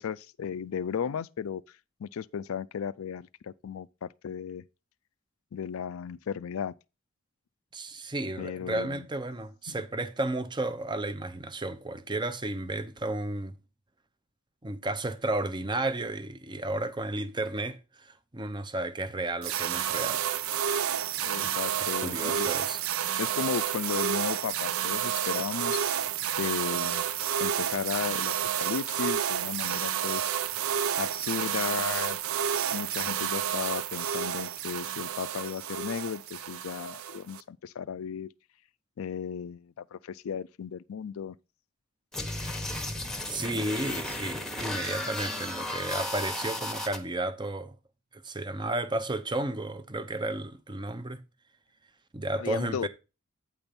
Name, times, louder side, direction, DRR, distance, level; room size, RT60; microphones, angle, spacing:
voice 1, 0.0-1.6 2.0-4.6 5.5-6.7 8.4-9.1 9.7-9.8 21.2-22.5 23.2-25.8 26.3-27.0 27.4-30.4 31.0-32.2 32.7-38.3 39.0-41.4 52.4-52.9, left 7 dB, 75° left, 0.4 m, -35 dB
voice 2, 7.7-13.5 14.6-20.3 21.4-22.8 43.3-47.7 48.1-51.2 52.1-52.9, right 2 dB, 20° right, 0.7 m, -33 dB
sound 1, 19.4-37.4, right 9 dB, 85° right, 0.5 m, -30 dB
sound 2, 42.1-47.0, left 1 dB, ahead, 1.0 m, -34 dB
8.9 x 4.4 x 5.2 m
head